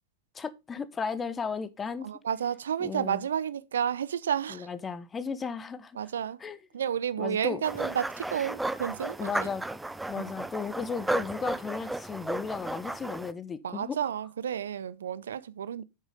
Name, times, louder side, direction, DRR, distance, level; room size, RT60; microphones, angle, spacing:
voice 1, 0.3-2.1 2.8-3.2 4.5-6.0 6.4-6.6 7.2-7.6 9.2-9.6 10.1-14.1, left 5 dB, 20° left, 0.8 m, -35 dB
voice 2, 2.0-4.7 6.0-6.4 6.7-9.5 10.1-10.2 13.6-15.8, right 8 dB, 65° right, 0.5 m, -31 dB
sound 1, 7.6-13.3, right 2 dB, 5° right, 0.4 m, -34 dB
8.5 x 6.3 x 3.8 m
figure-of-eight pair, 90°, 0 cm